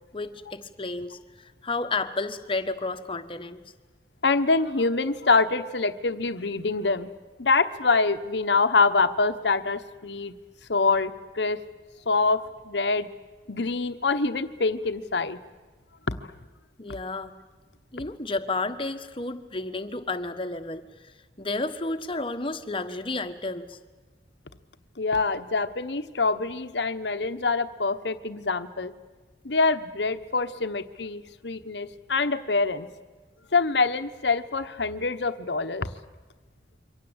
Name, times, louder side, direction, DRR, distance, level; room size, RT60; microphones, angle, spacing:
voice 1, 0.1-1.2 1.6-3.6 16.8-17.3 17.9-20.8 21.4-23.8, left 3 dB, 30° left, 9 dB, 1.3 m, -31 dB
voice 2, 4.2-7.1 7.4-10.3 10.7-11.6 12.1-13.1 13.5-15.4 16.1-16.3 25.0-28.9 29.4-32.9 33.5-35.9, left 3 dB, 80° left, 11 dB, 1.1 m, -25 dB
28.0 x 24.0 x 8.1 m, 1.3 s
head